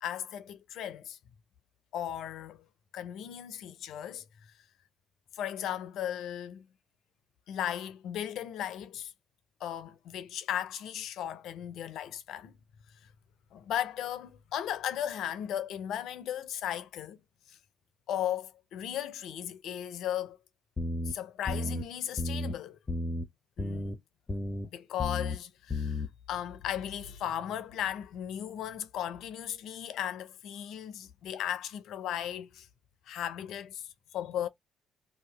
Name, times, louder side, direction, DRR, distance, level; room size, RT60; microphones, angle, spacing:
voice 1, 0.0-1.2 1.9-2.6 2.9-4.2 5.3-6.7 7.5-9.1 9.6-12.5 13.5-17.2 17.5-17.6 18.1-20.4 21.0-22.8 23.6-24.0 24.6-32.7 33.1-34.5, left 10 dB, 75° left, 0.5 m, -36 dB
sound 1, 20.8-21.1 21.5-21.8 22.2-22.5 22.9-23.2 23.6-24.0 24.3-24.7 25.0-25.4 25.7-26.1, left 2 dB, 30° left, 0.6 m, -32 dB
2.8 x 2.3 x 3.2 m
supercardioid pair, 65°, 0 cm